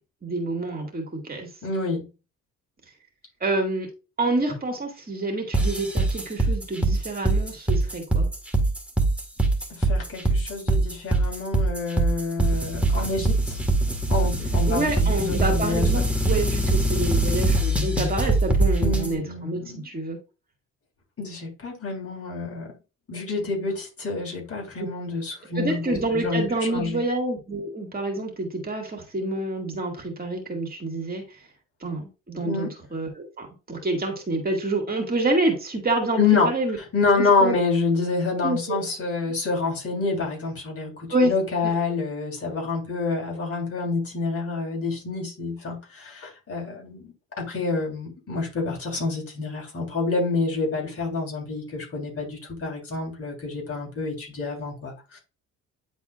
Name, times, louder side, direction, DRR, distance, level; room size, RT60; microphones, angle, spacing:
voice 1, 0.2-1.5 3.4-3.9 4.2-8.3 14.7-20.2 25.6-31.2 31.8-36.8 37.2-37.6 38.4-38.8 41.1-41.3 41.6-41.7, right 2 dB, 30° right, 2 dB, 2.1 m, -27 dB
voice 2, 1.6-2.0 9.8-13.6 13.9-16.0 18.8-19.9 21.2-22.7 23.1-26.4 26.7-27.0 32.4-32.7 36.2-36.5 36.9-55.2, left 4 dB, 50° left, -1 dB, 3.4 m, -27 dB
sound 1, 5.5-19.1, right 2 dB, 5° right, 1.5 m, -22 dB
9.5 x 4.1 x 2.4 m, 0.31 s
cardioid pair, 90°, 30 cm